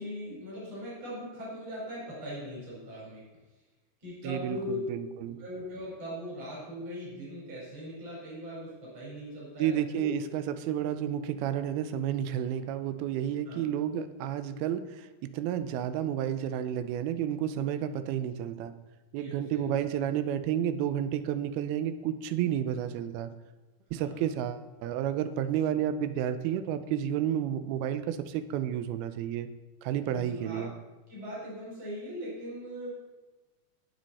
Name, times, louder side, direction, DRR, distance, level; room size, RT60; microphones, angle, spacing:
voice 1, 0.0-3.2 4.0-4.8 5.4-10.1 13.5-13.6 19.2-19.9 24.0-24.2 30.1-30.7 31.1-32.9, left 1 dB, 40° right, -7 dB, 5.8 m, -40 dB
voice 2, 4.2-5.4 9.6-18.7 19.1-23.3 23.9-29.5 29.8-30.7, right 10 dB, 90° right, 12 dB, 2.6 m, -31 dB
19.0 x 6.3 x 4.2 m, 1.2 s
omnidirectional pair, 4.3 m